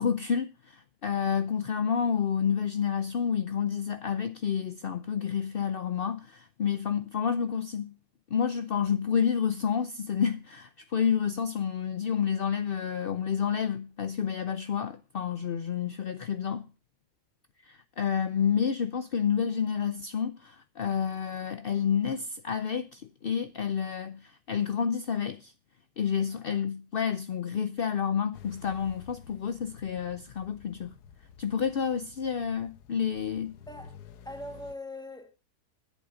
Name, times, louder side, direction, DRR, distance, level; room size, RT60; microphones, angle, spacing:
voice 1, 0.0-7.9 8.3-16.6 17.7-25.5 26.0-30.9 31.4-33.5, left 7 dB, 60° left, 0.6 m, -29 dB
sound 1, 28.3-34.8, left 6 dB, 80° left, 1.4 m, -51 dB
voice 2, 33.7-34.0 34.2-35.3, left 1 dB, 5° left, 1.6 m, -41 dB
11.0 x 8.4 x 6.3 m
omnidirectional pair, 1.7 m